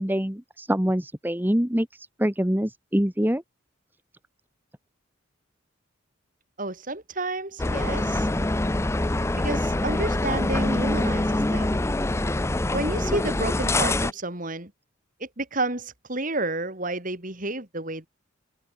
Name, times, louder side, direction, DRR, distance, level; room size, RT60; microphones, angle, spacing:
voice 1, 0.0-3.4, equal, 10° right, 1.3 m, -25 dB
voice 2, 6.6-8.3 9.4-11.8 12.7-14.7 15.2-18.1, right 2 dB, 40° right, 3.4 m, -30 dB
sound 1, 7.6-14.1, left 2 dB, 15° left, 0.5 m, -25 dB
head